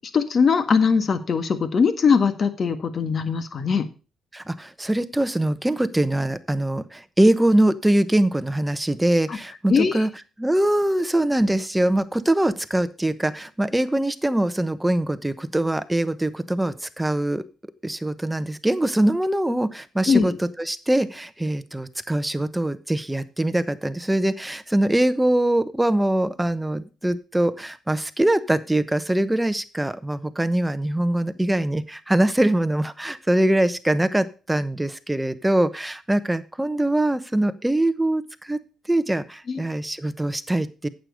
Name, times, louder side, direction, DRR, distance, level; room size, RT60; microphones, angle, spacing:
voice 1, 0.1-3.9 9.3-9.4 9.7-10.0 20.1-20.4 39.5-39.6, left 5 dB, 45° left, 10 dB, 1.5 m, -21 dB
voice 2, 4.3-10.1 10.4-17.4 17.8-38.6 38.9-40.9, right 1 dB, 10° right, 13 dB, 0.9 m, -23 dB
9.0 x 7.8 x 5.2 m, 0.33 s
cardioid pair, 90°, 0 cm